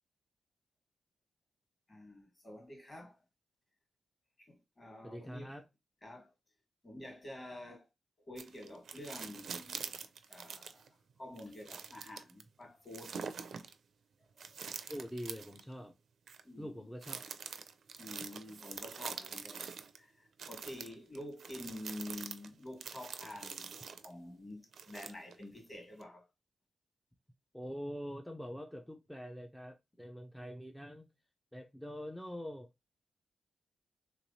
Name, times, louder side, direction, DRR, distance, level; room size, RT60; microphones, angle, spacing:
voice 1, 1.9-3.2 4.4-5.5 6.0-6.3 6.8-7.9 8.3-9.9 10.3-13.2 14.3-14.7 16.4-16.9 18.0-19.6 20.0-26.3, left 1 dB, 30° left, 1.4 m, -48 dB
voice 2, 5.0-5.7 14.9-15.9 16.6-17.3 27.5-31.1 31.5-32.7, equal, 5° left, 0.4 m, -44 dB
sound 1, 8.4-10.9 11.4-12.4 12.9-13.7 14.4-15.6 16.3-16.4 17.0-20.0 20.4-24.1 24.7-25.4 26.0-26.1, right 6 dB, 70° right, 0.4 m, -45 dB
3.4 x 3.0 x 2.6 m
wide cardioid pair, 130°, 0 cm